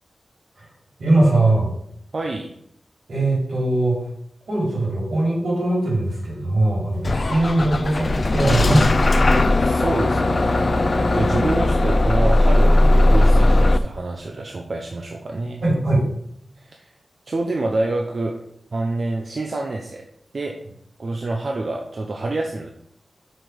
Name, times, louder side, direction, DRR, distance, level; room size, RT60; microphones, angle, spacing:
voice 1, 1.0-1.7 3.1-4.0 4.5-9.1 15.6-16.0, right 2 dB, 80° right, -3 dB, 3.8 m, -20 dB
voice 2, 2.1-2.5 9.7-10.7 11.1-15.6 16.6-16.9 17.3-18.4 18.7-20.0 20.3-20.5 21.0-22.7, right 2 dB, 55° right, 2 dB, 0.8 m, -26 dB
Bus / Engine starting, 7.0-13.8, left 2 dB, 45° left, 0.5 m, -17 dB
6.7 x 6.4 x 5.1 m, 0.69 s
wide cardioid pair, 110°, 0 cm